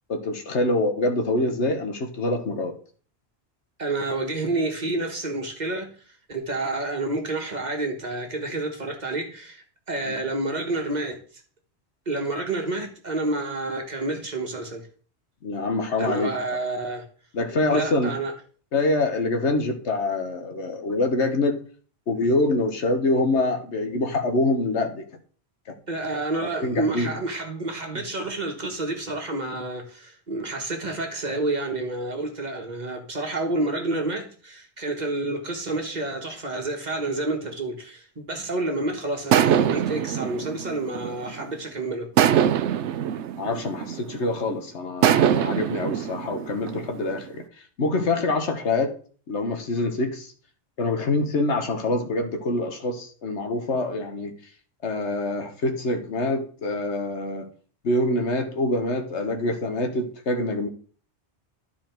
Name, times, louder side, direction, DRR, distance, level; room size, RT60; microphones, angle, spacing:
voice 1, 0.1-2.7 10.0-10.1 15.4-16.3 17.3-18.1 18.7-21.6 22.1-25.0 26.4-27.1 43.4-47.5 47.8-49.0 49.3-50.3 50.8-54.3 54.8-57.5 57.8-60.7, left 2 dB, 85° left, 1.5 m, -25 dB
voice 2, 3.8-5.9 6.3-11.2 12.0-14.9 16.0-17.0 17.7-18.3 25.9-42.1, right 2 dB, 40° right, 1.6 m, -29 dB
sound 1, 39.3-41.6 42.2-44.3 45.0-47.3, right 10 dB, 85° right, 0.9 m, -23 dB
12.5 x 4.6 x 4.5 m
omnidirectional pair, 1.1 m